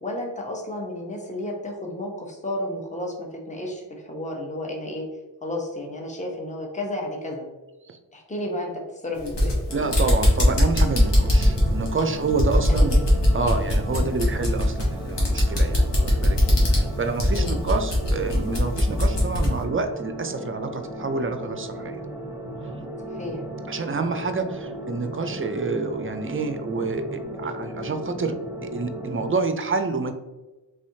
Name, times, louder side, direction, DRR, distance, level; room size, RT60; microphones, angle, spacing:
voice 1, 0.0-5.0 5.4-7.4 8.1-9.6 12.7-13.0 13.9-14.1 17.3-17.5 23.1-23.4, left 1 dB, 15° left, -1 dB, 0.9 m, -32 dB
sound 1, 9.2-19.6, left 1 dB, 70° left, 1.2 m, -21 dB
sound 2, 9.7-29.3, right 1 dB, 10° right, 1.0 m, -36 dB
voice 2, 9.7-13.0 13.3-16.4 16.6-22.0 23.7-28.4 28.6-30.1, right 4 dB, 30° right, 7 dB, 0.4 m, -28 dB
3.4 x 3.3 x 2.7 m, 1.1 s
cardioid pair, 45°, 44 cm